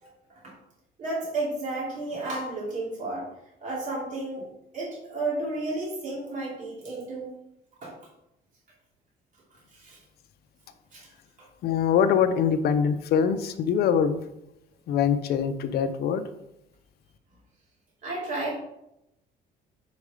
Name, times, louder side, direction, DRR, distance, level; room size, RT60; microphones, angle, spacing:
voice 1, 0.0-0.5 1.0-3.3 3.6-4.5 4.7-7.3 7.8-7.9 9.7-10.0 10.9-11.1 11.4-11.5 18.0-18.5, right 2 dB, 50° right, -6 dB, 2.7 m, -32 dB
voice 2, 11.6-14.2 14.9-16.2, left 7 dB, 70° left, 10 dB, 0.7 m, -23 dB
5.2 x 4.9 x 4.9 m, 0.83 s
cardioid pair, 110°, 17 cm